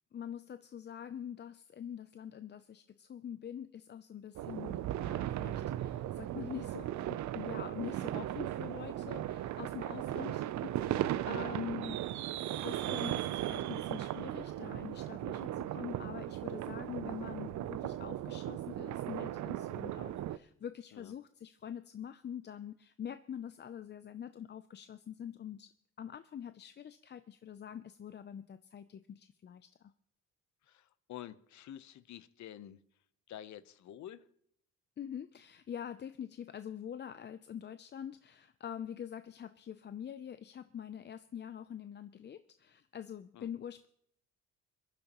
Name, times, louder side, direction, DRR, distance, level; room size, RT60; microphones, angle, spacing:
voice 1, 0.1-25.7 26.0-29.9 35.0-43.9, left 9 dB, 35° left, 12 dB, 0.5 m, -45 dB
sound 1, 4.4-20.4, right 13 dB, 70° right, 0.6 m, -37 dB
voice 2, 11.5-11.9 20.9-21.1 30.6-32.8 33.3-34.2 43.3-43.5, left 11 dB, 70° left, 15 dB, 0.8 m, -49 dB
26.0 x 11.0 x 3.0 m, 0.69 s
cardioid pair, 90°, 30 cm